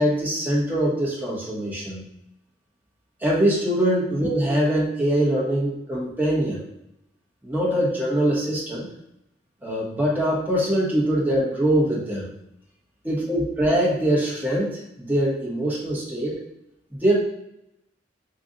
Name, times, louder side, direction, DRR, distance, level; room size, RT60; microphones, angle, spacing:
voice 1, 0.0-2.0 3.2-6.6 7.4-8.9 9.6-12.3 13.0-16.4 17.0-17.2, right 1 dB, 10° right, -5 dB, 1.1 m, -23 dB
3.9 x 2.5 x 3.7 m, 0.83 s
head